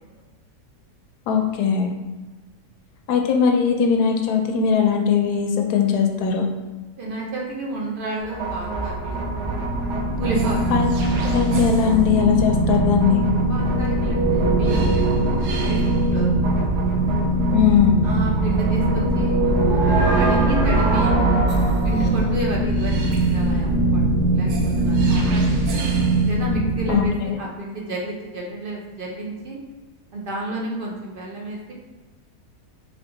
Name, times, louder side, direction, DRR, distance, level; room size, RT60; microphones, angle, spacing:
voice 1, 1.3-1.9 3.1-6.5 10.7-10.9 11.2-13.3 17.5-18.0 26.9-27.4, left 7 dB, 75° left, 2 dB, 1.1 m, -19 dB
voice 2, 7.0-9.2 10.2-10.7 13.5-15.8 16.1-16.4 16.7-16.8 18.0-21.5 21.8-24.0 24.3-25.4 25.7-25.8 26.3-29.6 30.1-31.7, right 2 dB, 60° right, -2 dB, 0.5 m, -31 dB
sound 1, 8.2-27.1, right 2 dB, 85° right, 1.2 m, -21 dB
3.4 x 3.4 x 3.8 m, 1.3 s
omnidirectional pair, 1.7 m